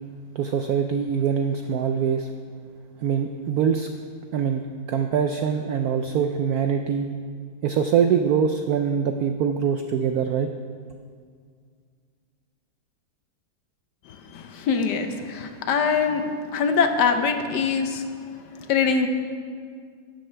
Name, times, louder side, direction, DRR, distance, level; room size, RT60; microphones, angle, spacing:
voice 1, 0.4-2.3 3.0-3.9 4.3-4.6 4.9-7.1 7.6-10.5, right 7 dB, 80° right, 6 dB, 0.8 m, -23 dB
voice 2, 14.3-18.0 18.7-19.1, left 5 dB, 65° left, 7 dB, 1.2 m, -23 dB
14.5 x 11.5 x 3.4 m, 2.1 s
omnidirectional pair, 2.1 m